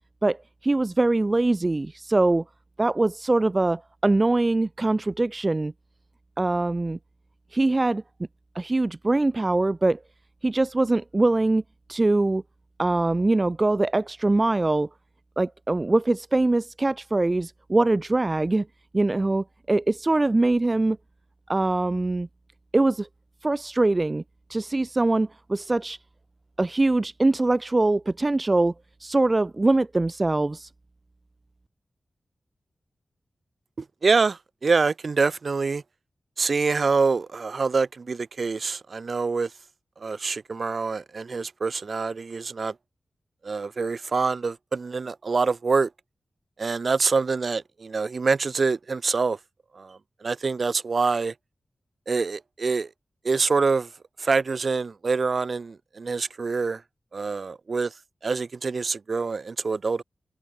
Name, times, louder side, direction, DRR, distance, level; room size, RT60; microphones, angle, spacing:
voice 1, 0.2-2.4 2.8-5.7 6.4-7.0 7.5-8.0 8.5-10.0 10.4-11.6 11.9-12.4 12.8-14.9 15.4-18.7 18.9-21.0 21.5-22.3 22.7-23.1 23.4-24.2 24.5-26.0 26.6-28.7 29.0-30.7, right 2 dB, 30° right, 0.7 m, -23 dB
voice 2, 33.8-35.8 36.4-39.5 40.0-42.7 43.4-45.9 46.6-49.4 49.7-51.3 52.1-52.9 53.2-53.9 54.2-56.8 57.1-57.9 58.2-60.0, right 4 dB, 60° right, 3.3 m, -25 dB
wide cardioid pair, 65°, 0 cm